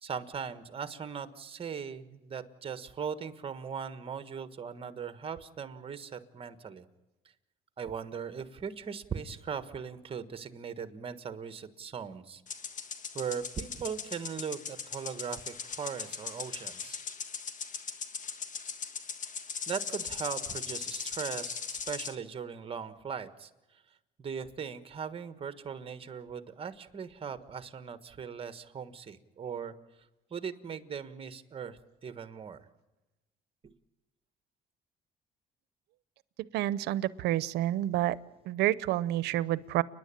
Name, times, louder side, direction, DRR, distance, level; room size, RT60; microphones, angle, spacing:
voice 1, 0.0-6.9 7.8-12.4 13.1-17.0 19.7-23.8 24.2-29.7 30.3-32.7 33.6-33.7, right 7 dB, 35° right, 11 dB, 1.4 m, -39 dB
sound 1, 12.5-22.2, left 6 dB, 50° left, 1.5 m, -39 dB
voice 2, 36.5-38.2 38.5-39.8, right 14 dB, 80° right, 18 dB, 0.7 m, -29 dB
30.0 x 10.5 x 8.8 m, 1.0 s
cardioid pair, 110°, 17 cm